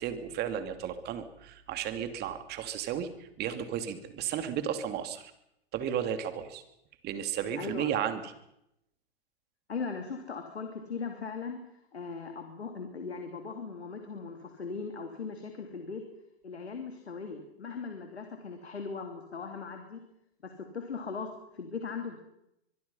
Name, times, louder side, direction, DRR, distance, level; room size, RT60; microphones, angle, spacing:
voice 1, 0.0-5.3 5.7-6.6 7.0-8.3, right 9 dB, 30° right, 8 dB, 2.8 m, -34 dB
voice 2, 7.5-7.9 9.7-16.0 16.4-20.0 20.4-22.2, left 5 dB, 90° left, 5 dB, 3.1 m, -39 dB
24.0 x 22.5 x 5.7 m, 0.81 s
hypercardioid pair, 120°, 31 cm